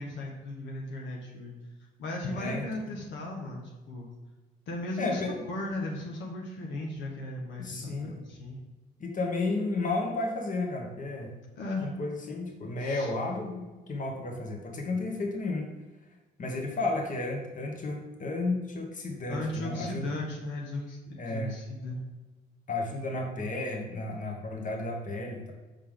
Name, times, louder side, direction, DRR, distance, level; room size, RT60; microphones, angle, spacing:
voice 1, 0.0-1.5 2.0-4.1 4.7-8.6 11.6-11.9 12.8-13.1 19.3-22.0, left 2 dB, 75° left, -2 dB, 1.2 m, -36 dB
voice 2, 2.3-2.6 5.0-5.3 7.6-8.2 9.0-11.3 11.8-15.7 16.4-20.0 21.2-21.6 22.7-25.5, left 2 dB, 40° left, 2 dB, 1.4 m, -32 dB
5.5 x 5.0 x 3.7 m, 1.2 s
supercardioid pair, 70°, 20 cm